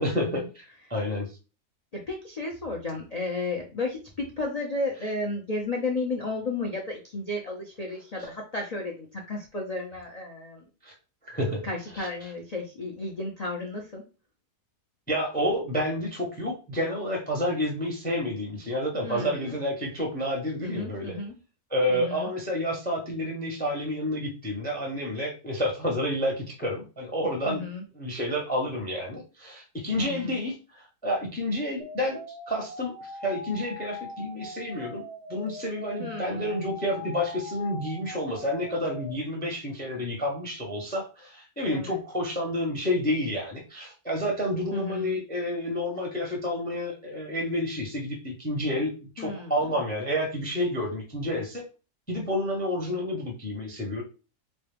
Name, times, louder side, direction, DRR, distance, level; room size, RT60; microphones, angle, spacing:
voice 1, 0.0-1.4 10.8-10.9 11.2-11.6 11.9-12.1 15.1-21.2 21.7-27.6 28.0-32.2 32.5-35.0 35.3-51.6 52.1-54.0, left 1 dB, 10° left, 1 dB, 0.5 m, -29 dB
voice 2, 1.9-10.6 11.6-14.0 19.0-19.6 20.6-21.3 21.9-22.3 27.5-27.8 30.0-30.4 36.0-36.5 41.7-42.0 44.7-45.2 49.2-49.8, left 2 dB, 70° left, 0 dB, 0.3 m, -33 dB
sound 1, 31.8-39.1, left 1 dB, 55° right, 0.3 m, -41 dB
4.1 x 2.2 x 3.3 m, 0.33 s
omnidirectional pair, 1.7 m